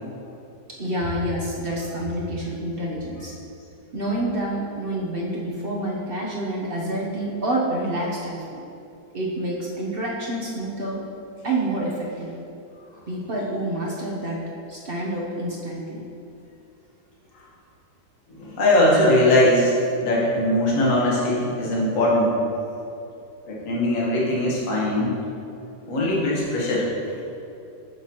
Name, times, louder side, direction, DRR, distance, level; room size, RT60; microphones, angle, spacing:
voice 1, 0.8-3.3 3.9-8.6 9.1-11.0 11.4-12.3 13.1-14.4 14.7-16.0 19.0-19.1, right 1 dB, 50° right, -3 dB, 0.6 m, -28 dB
voice 2, 18.3-19.7 20.0-22.4 23.4-25.1 25.9-26.9, left 1 dB, 50° left, -4 dB, 1.6 m, -20 dB
7.9 x 6.9 x 2.9 m, 2.7 s
omnidirectional pair, 1.9 m